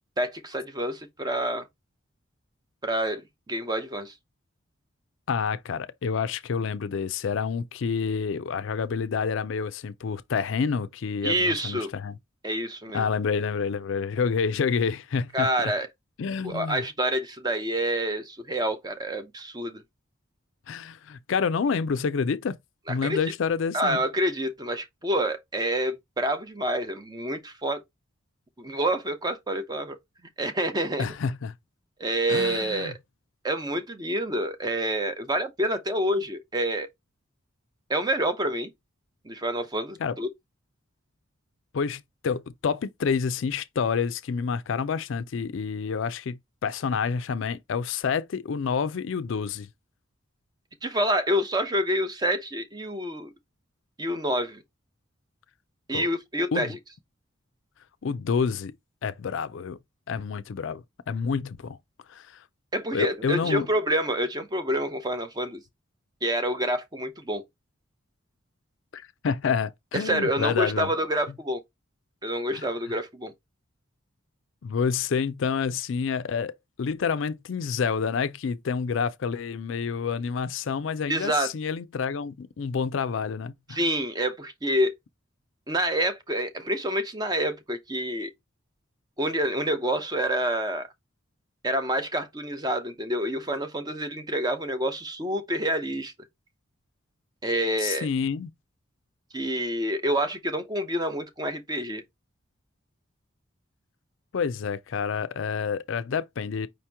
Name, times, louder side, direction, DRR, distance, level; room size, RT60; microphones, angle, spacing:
voice 1, 0.2-1.7 2.8-4.1 11.2-11.9 12.4-13.0 15.3-15.9 16.4-19.8 22.9-23.2 23.7-27.8 28.6-30.0 30.4-31.1 32.0-32.9 33.4-36.9 37.9-38.7 39.3-40.3 50.8-53.3 54.0-54.6 55.9-56.8 62.7-65.6 66.2-67.4 69.9-71.6 72.2-73.3 81.1-81.5 83.7-84.9 85.7-88.3 89.2-90.9 91.6-96.1 97.4-98.1 99.3-102.0, right 1 dB, 20° right, 0.6 m, -27 dB
voice 2, 5.3-12.1 12.9-15.7 16.2-16.8 20.7-22.6 22.9-24.0 31.0-31.5 32.3-32.9 40.0-40.2 41.7-49.7 55.9-56.1 56.5-56.8 58.0-58.7 59.0-59.8 60.1-61.8 62.1-62.4 62.9-63.7 68.9-70.9 72.5-72.6 74.6-76.5 76.8-83.8 97.8-98.5 104.3-106.7, left 6 dB, 65° left, 0.4 m, -28 dB
5.1 x 2.9 x 3.4 m
head